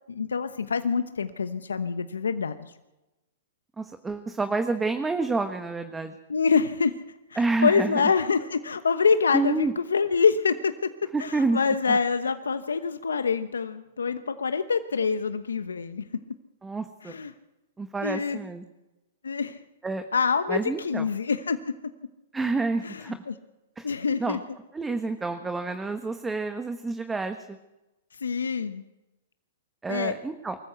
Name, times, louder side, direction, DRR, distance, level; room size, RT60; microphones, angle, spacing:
voice 1, 0.1-2.7 6.3-6.9 7.3-10.9 11.2-16.1 17.0-17.3 18.0-18.4 19.2-19.6 20.1-21.6 22.8-23.3 23.8-24.4 28.1-28.8 29.9-30.1, left 5 dB, 90° left, 10 dB, 1.0 m, -26 dB
voice 2, 3.8-6.1 7.4-8.1 9.3-9.7 11.1-11.6 11.9-12.0 16.6-17.1 17.8-18.6 19.8-20.0 20.5-21.0 22.3-23.2 23.8-24.4 24.7-27.6 29.8-30.6, right 3 dB, 10° right, 8 dB, 1.3 m, -29 dB
24.0 x 14.0 x 8.1 m, 1.0 s
hypercardioid pair, 120°, 0 cm